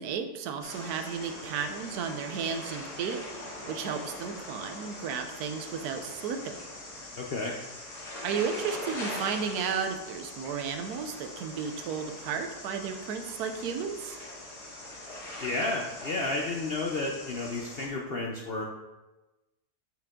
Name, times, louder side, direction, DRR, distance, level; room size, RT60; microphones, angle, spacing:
voice 1, 0.0-6.6 8.2-14.2, right 6 dB, 70° right, 6 dB, 1.2 m, -33 dB
sound 1, 0.6-17.9, left 1 dB, 75° left, 2.3 m, -42 dB
voice 2, 7.1-7.6 15.4-18.6, left 2 dB, 60° left, -1 dB, 0.6 m, -32 dB
7.7 x 5.1 x 3.6 m, 1.1 s
omnidirectional pair, 1.8 m